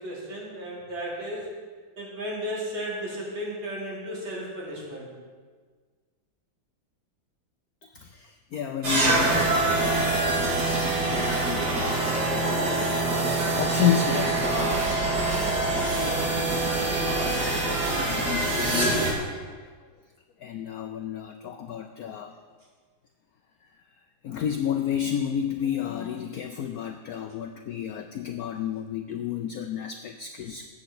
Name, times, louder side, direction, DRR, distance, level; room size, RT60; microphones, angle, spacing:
voice 1, 0.0-1.5 2.0-5.1, equal, 70° right, -4 dB, 3.5 m, -34 dB
voice 2, 7.8-10.2 10.8-13.2 13.5-15.0 16.2-19.6 20.4-22.4 24.2-30.7, left 9 dB, 90° left, 6 dB, 0.8 m, -32 dB
sound 1, 8.8-19.1, right 2 dB, 50° right, 2.6 m, -25 dB
14.5 x 9.0 x 4.3 m, 1.5 s
omnidirectional pair, 2.2 m